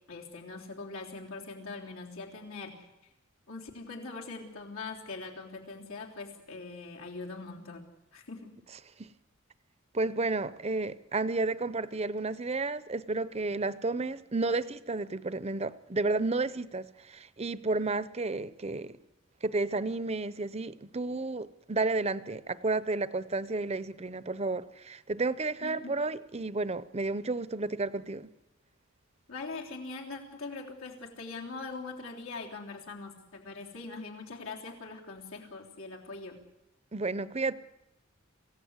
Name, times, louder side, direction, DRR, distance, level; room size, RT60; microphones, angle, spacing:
voice 1, 0.1-2.9 3.5-7.8 8.1-8.6 25.6-25.9 29.3-36.4, left 3 dB, 85° left, 3.6 m, -42 dB
voice 2, 9.9-19.0 19.4-28.3 36.9-37.5, right 3 dB, 30° right, 0.7 m, -32 dB
27.0 x 16.5 x 8.2 m
head